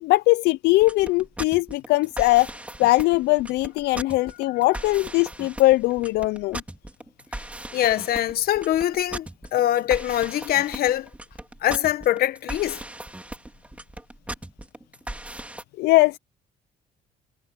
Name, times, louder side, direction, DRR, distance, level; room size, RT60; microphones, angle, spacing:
voice 1, 0.0-2.5 2.8-6.6 15.8-16.2, left 20 dB, 85° left, 0.5 m, -20 dB
sound 1, 0.7-15.6, right 1 dB, 10° right, 2.9 m, -38 dB
voice 2, 7.7-11.1 11.6-12.8, left 12 dB, 65° left, 1.1 m, -23 dB
cardioid pair, 110°, 17 cm